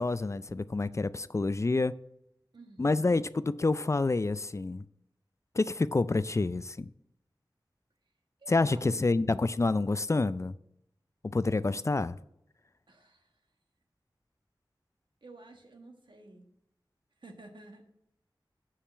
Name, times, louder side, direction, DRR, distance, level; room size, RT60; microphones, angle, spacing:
voice 1, 0.0-1.9 2.8-4.9 5.5-6.9 8.5-10.6 11.2-12.2, left 3 dB, 35° left, 0.3 m, -28 dB
voice 2, 2.5-3.1 8.4-9.1 12.9-13.3 15.2-16.4 17.2-17.9, right 2 dB, 70° right, 1.4 m, -51 dB
6.5 x 5.7 x 6.1 m
wide cardioid pair, 50°, 8 cm